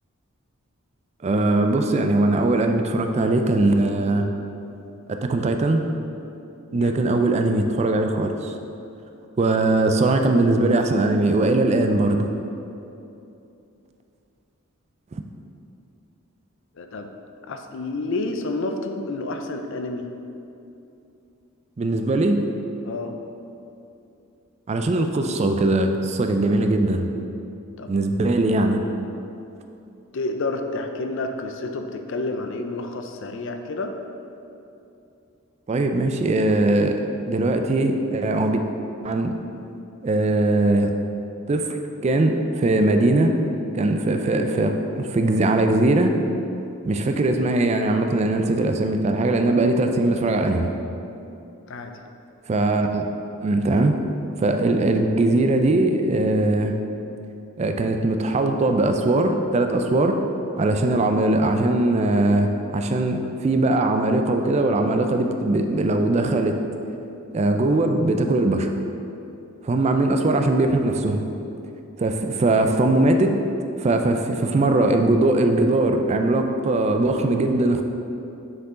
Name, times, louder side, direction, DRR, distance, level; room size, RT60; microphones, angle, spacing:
voice 1, 1.2-4.3 5.1-5.8 6.7-8.5 9.4-12.3 15.1-15.2 21.8-22.4 24.7-27.1 27.9-28.8 35.7-37.0 37.3-38.6 39.0-39.3 40.0-40.9 41.5-41.8 42.0-43.3 43.7-46.1 46.8-50.7 52.5-53.1 53.4-54.0 54.4-56.8 57.6-60.2 60.6-66.6 67.3-68.7 69.6-71.2 72.0-73.4 73.8-77.8, right 2 dB, 30° right, 5 dB, 0.3 m, -20 dB
voice 2, 16.8-17.1 17.5-20.1 22.8-23.1 27.8-27.9 30.1-33.9 51.7-51.9, left 2 dB, 60° left, 5 dB, 0.5 m, -29 dB
6.6 x 4.7 x 3.7 m, 2.8 s
head